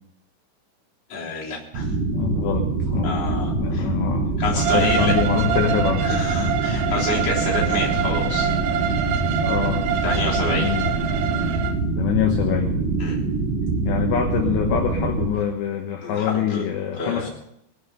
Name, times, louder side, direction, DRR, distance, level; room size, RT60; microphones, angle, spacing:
voice 1, 1.1-1.9 3.0-3.9 4.4-5.1 6.0-8.5 10.0-10.8 13.0-13.2 16.0-16.7 16.9-17.3, left 3 dB, 35° left, -5 dB, 4.3 m, -28 dB
sound 1, 1.7-15.3, right 3 dB, 50° right, 7.8 m, -24 dB
voice 2, 2.1-3.2 3.6-6.6 9.4-9.9 10.6-10.9 12.0-12.8 13.8-17.3, left 9 dB, 70° left, 2 dB, 3.1 m, -25 dB
Bowed string instrument, 4.6-11.7, right 9 dB, 75° right, 2.7 m, -26 dB
21.5 x 7.8 x 5.5 m, 0.78 s
omnidirectional pair, 5.5 m